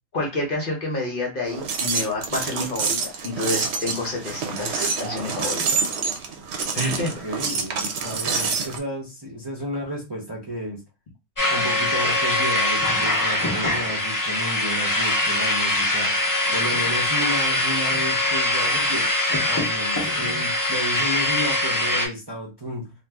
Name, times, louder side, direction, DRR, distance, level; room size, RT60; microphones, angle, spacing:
voice 1, 0.1-5.9 6.7-7.1, left 2 dB, 50° left, 0 dB, 0.9 m, -28 dB
sound 1, 1.5-8.8, right 5 dB, 70° right, 0.9 m, -27 dB
voice 2, 7.0-10.8 11.5-16.1 16.5-22.9, equal, 25° right, -5 dB, 0.7 m, -32 dB
sound 2, 11.4-22.1, left 1 dB, 20° left, 0.5 m, -23 dB
2.6 x 2.3 x 3.3 m, 0.26 s
omnidirectional pair, 1.3 m